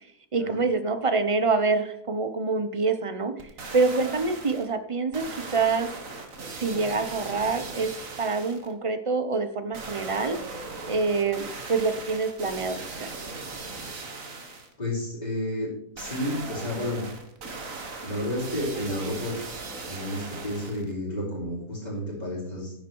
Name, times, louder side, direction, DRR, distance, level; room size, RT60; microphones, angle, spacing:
voice 1, 0.3-3.3 3.7-5.9 6.6-7.9 8.2-10.4 10.9-13.1, right 4 dB, 35° right, 9 dB, 0.5 m, -26 dB
sound 1, 3.4-4.7 5.1-8.7 9.7-14.7 16.0-20.9 21.4-21.5, right 3 dB, 55° right, 1.9 m, -38 dB
voice 2, 14.8-15.7 15.9-17.0 18.0-19.3 19.9-22.7, left 1 dB, 25° left, -9 dB, 4.5 m, -31 dB
10.5 x 8.8 x 4.6 m, 0.72 s
omnidirectional pair, 1.7 m